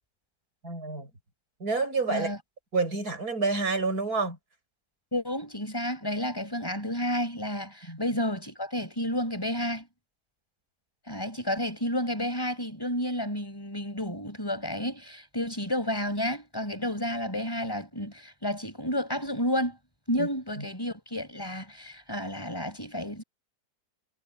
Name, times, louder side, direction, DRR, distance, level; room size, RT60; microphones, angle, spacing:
voice 1, 0.6-1.1 1.6-2.3 2.7-4.4 7.9-8.0 20.2-20.3 20.6-20.7, right 3 dB, 60° right, 6.8 m, -28 dB
voice 2, 5.1-9.9 11.1-19.8 20.1-23.2, equal, 15° left, 4.9 m, -31 dB
omnidirectional pair, 1.8 m